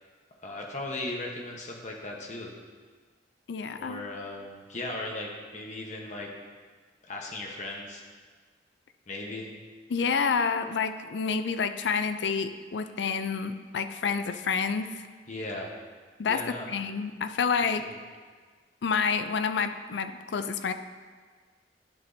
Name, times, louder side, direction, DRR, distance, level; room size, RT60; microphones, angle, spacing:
voice 1, 0.4-2.5 3.8-6.3 7.1-8.0 9.1-9.5 15.3-15.7 16.3-16.7 17.7-18.0, left 2 dB, 45° left, 0 dB, 1.1 m, -37 dB
voice 2, 3.5-4.0 9.9-14.9 16.2-17.8 18.8-20.7, left 5 dB, 80° left, 10 dB, 0.4 m, -28 dB
10.5 x 6.1 x 2.7 m, 1.5 s
head